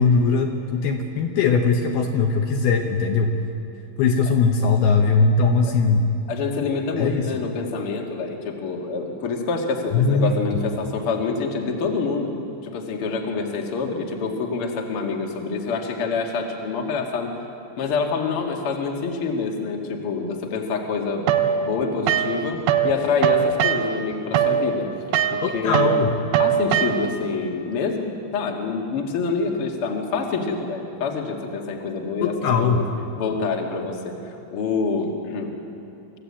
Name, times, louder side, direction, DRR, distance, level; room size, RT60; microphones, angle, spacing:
voice 1, 0.0-3.4 4.0-6.1 7.0-7.4 9.9-10.6 25.4-26.2 32.2-32.8, left 4 dB, 70° left, 3 dB, 2.6 m, -20 dB
voice 2, 6.3-12.3 12.6-17.3 17.8-21.2 21.6-24.9 25.3-25.9 26.4-28.0 28.3-32.9 33.2-35.5, left 4 dB, 45° left, 1 dB, 1.8 m, -26 dB
sound 1, 21.3-22.9 23.2-27.3, right 8 dB, 75° right, 2.8 m, -21 dB
26.0 x 15.0 x 8.6 m, 2.8 s
omnidirectional pair, 5.5 m